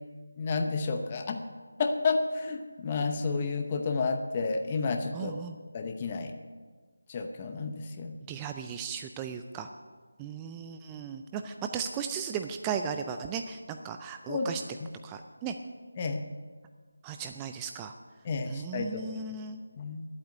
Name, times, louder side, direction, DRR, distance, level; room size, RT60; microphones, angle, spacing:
voice 1, 0.4-1.4 1.8-5.3 5.7-6.3 7.1-8.1 14.3-14.5 14.8-14.9 16.0-16.2 18.2-19.2 19.8-20.1, left 4 dB, 25° left, 5 dB, 0.8 m, -31 dB
voice 2, 5.1-5.6 8.3-9.7 10.2-14.6 15.0-15.5 17.0-17.9 18.5-19.6, right 7 dB, 10° right, 6 dB, 0.4 m, -36 dB
10.5 x 8.6 x 9.4 m, 1.5 s
figure-of-eight pair, 165°, 0 cm